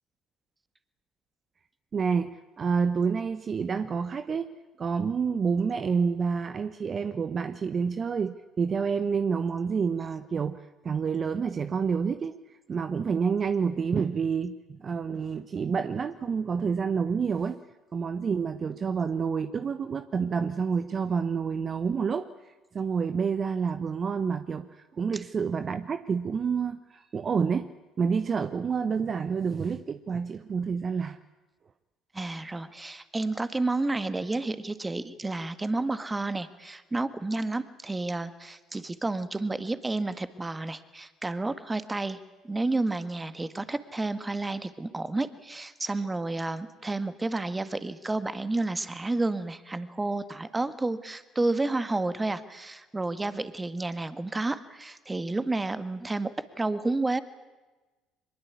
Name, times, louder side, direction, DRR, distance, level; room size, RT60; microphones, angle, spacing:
voice 1, 1.9-4.5 4.8-17.6 17.9-27.7 28.0-31.2, right 6 dB, 40° right, 11 dB, 1.0 m, -28 dB
voice 2, 32.1-42.2 42.4-57.2, right 2 dB, 20° right, 12 dB, 1.8 m, -30 dB
23.5 x 21.5 x 8.5 m, 1.2 s
hypercardioid pair, 60°, 0 cm